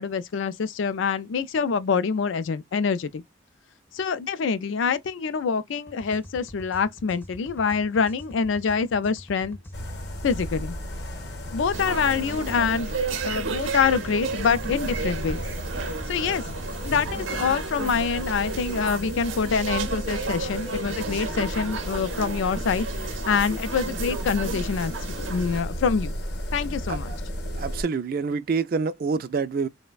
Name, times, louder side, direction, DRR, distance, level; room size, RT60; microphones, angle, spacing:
voice 1, 0.0-3.2 3.9-9.6 10.2-10.8 11.5-13.0 13.2-15.4 16.1-16.5 16.8-22.9 23.3-26.1 26.5-27.1, left 6 dB, 85° left, 0.4 m, -25 dB
sound 1, 5.9-9.8 13.7-17.6, equal, 10° left, 0.5 m, -45 dB
sound 2, 9.7-27.8, equal, 55° left, 0.8 m, -34 dB
sound 3, 11.7-25.6, right 4 dB, 90° right, 0.6 m, -33 dB
voice 2, 27.6-29.7, right 5 dB, 50° right, 0.3 m, -26 dB
3.2 x 2.1 x 2.2 m
head